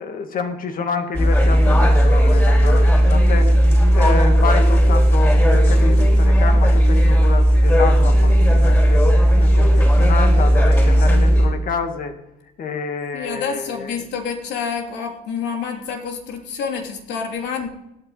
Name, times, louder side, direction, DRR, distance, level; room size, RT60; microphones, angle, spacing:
voice 1, 0.0-3.6 3.9-9.0 9.4-12.2 12.6-14.0, left 5 dB, 45° left, 6 dB, 2.1 m, -28 dB
sound 1, 1.1-11.5, equal, 15° left, 4.3 m, -14 dB
voice 2, 13.1-17.7, left 6 dB, 65° left, 2 dB, 3.2 m, -28 dB
17.0 x 9.6 x 4.1 m, 0.88 s
cardioid pair, 100°, 19 cm